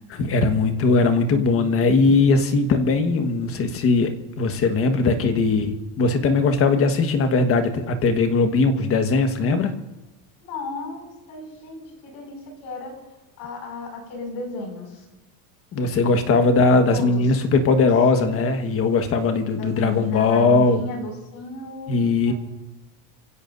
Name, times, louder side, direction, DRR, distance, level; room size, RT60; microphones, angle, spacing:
voice 1, 0.2-9.7 15.7-20.8 21.9-22.3, left 3 dB, 30° left, 7 dB, 1.4 m, -19 dB
voice 2, 10.4-13.0 13.4-15.0 16.9-17.3 17.8-18.2 19.6-22.0 22.3-22.4, left 2 dB, 50° left, 1 dB, 6.0 m, -34 dB
28.5 x 16.5 x 2.6 m, 1.0 s
cardioid pair, 170°, 43 cm